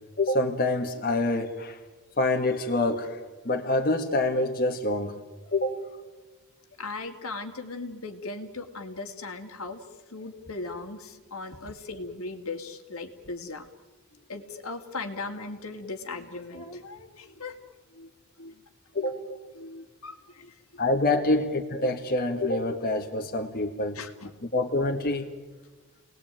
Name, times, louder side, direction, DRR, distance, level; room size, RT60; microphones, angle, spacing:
voice 1, 0.2-1.8 2.2-3.2 3.4-5.2 5.5-5.8 18.9-19.2 20.8-24.0 24.4-25.3, left 2 dB, 40° left, 3 dB, 1.7 m, -26 dB
voice 2, 6.8-9.8 10.1-13.7 14.3-17.6 17.9-18.1 18.4-18.6 19.0-20.8 21.1-21.2 23.9-24.4, left 3 dB, 70° left, 5 dB, 2.3 m, -38 dB
29.0 x 20.0 x 9.1 m, 1.3 s
head